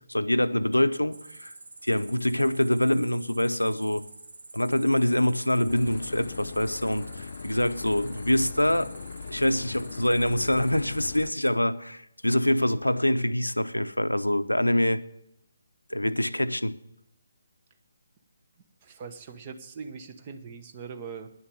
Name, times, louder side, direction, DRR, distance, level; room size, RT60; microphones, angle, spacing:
voice 1, 0.0-1.5 1.8-4.1 4.5-8.9 9.3-15.0 15.9-16.8, left 1 dB, 90° left, 0.6 m, -25 dB
Cricket, 1.1-11.5, right 2 dB, 65° right, 1.2 m, -48 dB
Boat Water vehicle / Engine, 5.7-11.3, left 5 dB, 50° left, 0.3 m, -40 dB
voice 2, 18.8-21.3, right 5 dB, 30° right, 1.1 m, -41 dB
10.5 x 7.1 x 9.3 m
figure-of-eight pair, 145°, 0 cm